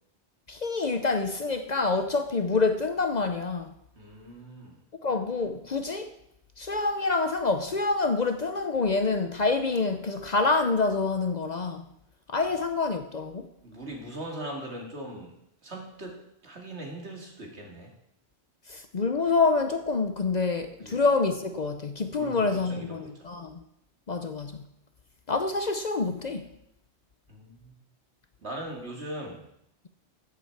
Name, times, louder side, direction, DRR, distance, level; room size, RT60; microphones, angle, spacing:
voice 1, 0.5-3.7 5.0-6.1 6.6-11.9 12.3-13.5 18.7-23.6 24.1-24.7 25.3-26.5, left 3 dB, 45° left, 0.7 m, -27 dB
voice 2, 4.0-4.8 13.6-15.3 15.6-17.9 20.8-21.0 22.1-23.1 27.3-27.7 28.4-29.5, right 1 dB, 75° right, 2.6 m, -40 dB
13.5 x 8.3 x 4.6 m
omnidirectional pair, 1.1 m